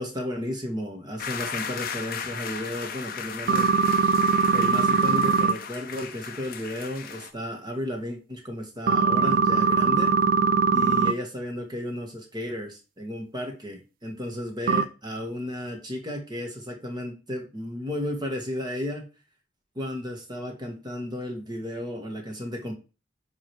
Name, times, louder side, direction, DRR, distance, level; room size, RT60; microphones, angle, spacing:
voice 1, 0.0-3.7 4.5-10.2 10.7-19.0 19.7-22.8, left 1 dB, 20° right, 2 dB, 1.5 m, -33 dB
sound 1, 1.2-7.3, left 6 dB, 45° left, 0.7 m, -36 dB
sound 2, 3.5-5.5 8.9-11.1 14.7-14.8, right 5 dB, 45° right, 0.4 m, -21 dB
9.6 x 3.3 x 4.7 m, 0.32 s
head